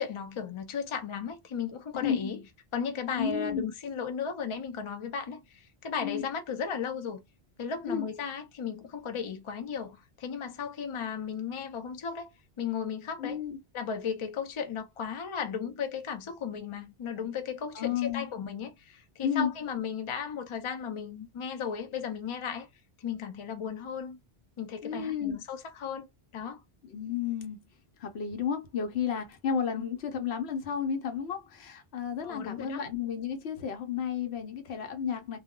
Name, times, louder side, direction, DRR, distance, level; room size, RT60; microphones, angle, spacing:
voice 1, 0.0-2.4 2.7-7.2 7.6-12.3 12.6-13.4 13.7-22.7 23.0-24.2 24.6-26.1 26.3-26.6 29.8-29.9 32.2-32.8, left 7 dB, 55° left, 0.3 m, -35 dB
voice 2, 3.1-3.6 6.0-6.2 7.8-8.0 13.2-13.6 17.7-18.3 19.2-19.5 24.8-25.4 26.8-27.6 28.0-35.4, left 7 dB, 90° left, 0.9 m, -32 dB
2.2 x 2.1 x 3.6 m
omnidirectional pair, 1.0 m